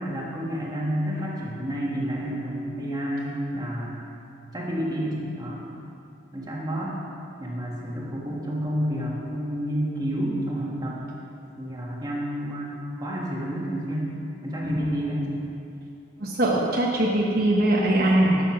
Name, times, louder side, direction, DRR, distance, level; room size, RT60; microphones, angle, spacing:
voice 1, 0.0-4.0 4.5-5.6 6.3-7.0 7.4-11.0 11.6-14.1 14.4-15.4, equal, 20° right, -4 dB, 1.7 m, -30 dB
voice 2, 16.2-18.4, right 1 dB, 50° right, -3 dB, 1.1 m, -21 dB
12.0 x 6.9 x 5.9 m, 2.7 s
head